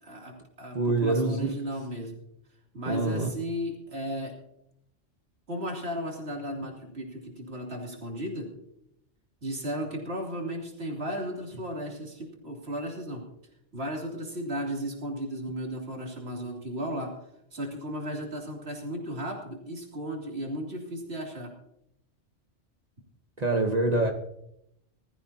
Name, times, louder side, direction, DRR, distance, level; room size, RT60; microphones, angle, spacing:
voice 1, 0.0-2.2 2.7-4.3 5.5-8.5 9.4-13.3 13.7-17.2 17.5-21.6, equal, 65° right, 3.1 m, -35 dB
voice 2, 0.7-1.5 2.8-3.4 23.4-24.1, right 2 dB, 35° right, 1.2 m, -25 dB
21.0 x 14.0 x 2.8 m
omnidirectional pair, 1.2 m